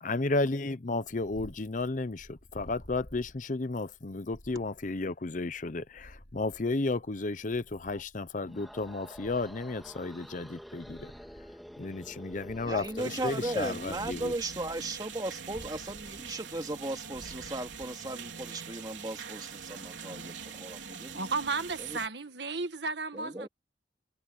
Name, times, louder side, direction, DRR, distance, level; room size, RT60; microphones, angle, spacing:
voice 1, 0.0-11.1 11.8-14.3, left 3 dB, 45° left, 0.7 m, -33 dB
Purr, 0.8-18.5, equal, 60° left, 6.1 m, -54 dB
sound 1, 8.4-13.3, equal, ahead, 2.3 m, -49 dB
voice 2, 12.6-21.2 21.8-22.0 23.1-23.5, right 2 dB, 20° right, 2.7 m, -37 dB
sound 2, 13.0-22.1, right 6 dB, 90° right, 3.9 m, -43 dB
voice 3, 21.1-23.5, right 4 dB, 70° right, 1.6 m, -33 dB
head